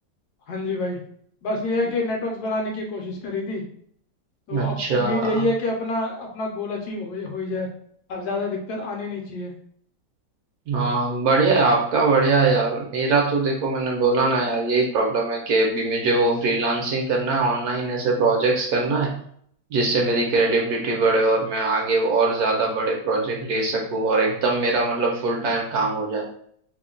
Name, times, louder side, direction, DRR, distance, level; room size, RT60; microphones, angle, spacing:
voice 1, 0.5-1.0 1.4-3.6 4.5-7.7 8.1-9.5, left 2 dB, 70° left, 1 dB, 1.1 m, -27 dB
voice 2, 4.5-5.4 10.7-19.2 19.7-26.3, right 3 dB, 70° right, 0 dB, 1.0 m, -22 dB
2.9 x 2.1 x 3.7 m, 0.64 s
omnidirectional pair, 1.9 m